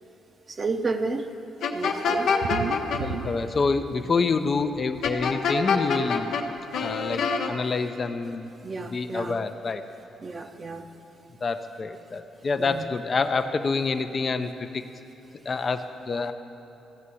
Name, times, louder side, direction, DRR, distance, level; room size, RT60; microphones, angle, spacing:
voice 1, 0.5-1.3 1.7-2.3 8.6-9.4 10.2-10.9 12.6-12.8, right 3 dB, 35° right, 5 dB, 0.7 m, -31 dB
sound 1, 1.6-3.0 5.0-6.4 6.7-7.5, left 5 dB, 75° left, 0.9 m, -25 dB
sound 2, 2.2-4.2 4.5-5.1 6.1-6.2 6.6-6.7 6.9-7.0, right 6 dB, 75° right, 0.6 m, -34 dB
voice 2, 3.0-6.3 6.8-8.5 8.8-9.8 11.4-14.8 15.5-16.3, left 4 dB, 40° left, 8 dB, 0.5 m, -27 dB
14.0 x 6.5 x 8.4 m, 3.0 s
cardioid pair, 90°, 0 cm